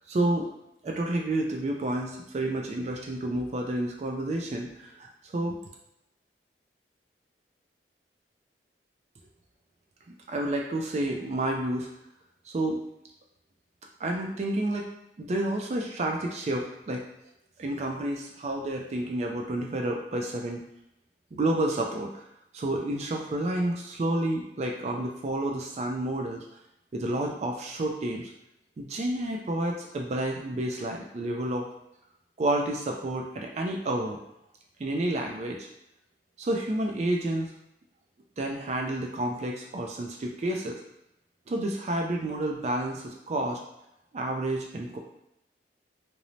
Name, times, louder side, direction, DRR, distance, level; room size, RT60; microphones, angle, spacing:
voice 1, 0.1-0.5 0.8-5.6 10.3-11.9 12.5-12.8 14.0-14.9 15.2-17.0 17.6-20.6 21.3-22.2 22.5-26.4 26.9-28.3 28.8-31.6 32.4-34.2 34.8-35.7 36.4-37.5 38.4-40.8 41.5-43.6 44.1-45.0, right 1 dB, 40° right, 1 dB, 0.3 m, -30 dB
3.0 x 2.0 x 2.6 m, 0.84 s
head